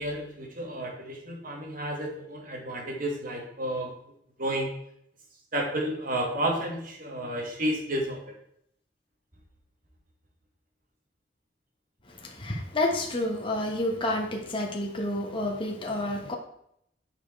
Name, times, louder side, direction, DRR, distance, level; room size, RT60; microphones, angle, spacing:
voice 1, 0.0-3.9 4.4-4.7 5.5-8.2, right 1 dB, 50° right, 0 dB, 2.2 m, -31 dB
voice 2, 12.1-16.3, left 1 dB, 30° left, 0 dB, 1.4 m, -29 dB
9.1 x 5.4 x 4.7 m, 0.72 s
head